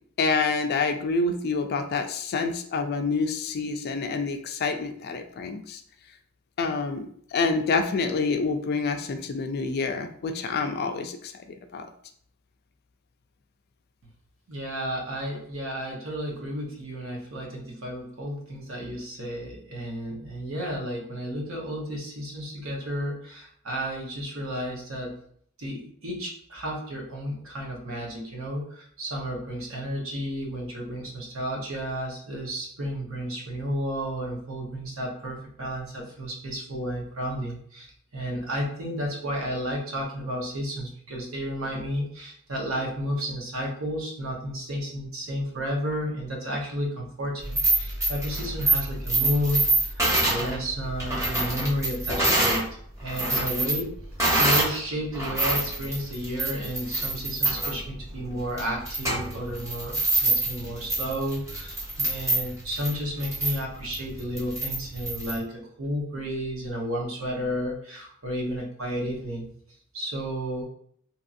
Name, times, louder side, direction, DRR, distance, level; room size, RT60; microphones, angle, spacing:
voice 1, 0.2-5.8 6.6-11.9, left 4 dB, 50° left, 6 dB, 0.3 m, -27 dB
voice 2, 14.5-25.2 25.6-37.9 38.1-49.6 49.9-52.7 53.0-53.9 54.4-69.5 69.9-70.6, equal, 80° right, -1 dB, 0.9 m, -32 dB
sound 1, 47.4-52.6 53.0-54.8 55.1-65.4, right 2 dB, 15° right, 1.0 m, -26 dB
2.9 x 2.6 x 2.4 m, 0.63 s
head